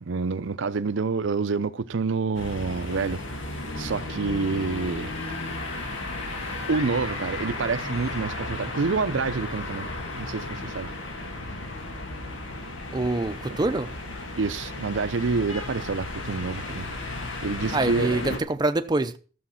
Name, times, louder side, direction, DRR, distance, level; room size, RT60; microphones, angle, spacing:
voice 1, 0.0-3.2 3.8-5.1 6.7-9.9 10.1-10.9 14.4-16.9 17.4-18.2, right 4 dB, 75° right, 0.6 m, -27 dB
sound 1, 2.3-18.4, left 2 dB, 85° left, 2.2 m, -34 dB
Screaming / Screech, 5.0-8.3 9.2-10.3, left 3 dB, 35° left, 1.6 m, -43 dB
voice 2, 12.9-13.9 17.7-19.2, right 2 dB, 20° right, 0.6 m, -25 dB
13.0 x 7.1 x 5.7 m
head